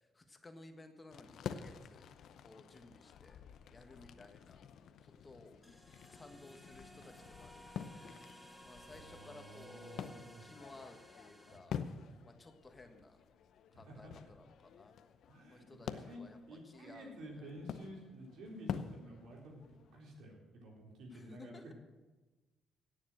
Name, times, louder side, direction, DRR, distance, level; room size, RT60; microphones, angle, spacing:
voice 1, 0.1-2.1 2.4-3.4 3.7-4.6 5.0-5.8 6.1-8.2 8.6-10.1 10.4-11.9 12.2-13.2 13.7-15.0 15.5-17.5 21.1-21.7, left 2 dB, 25° left, 6 dB, 1.5 m, -57 dB
sound 1, 1.1-20.0, left 8 dB, 70° left, 0.7 m, -48 dB
sound 2, 5.6-11.6, equal, 5° right, 1.7 m, -57 dB
voice 2, 8.7-10.5 13.7-14.1 15.3-16.2 16.5-21.7, equal, 75° right, -1 dB, 3.9 m, -52 dB
17.5 x 7.2 x 6.3 m, 1.2 s
cardioid pair, 75°, 0 cm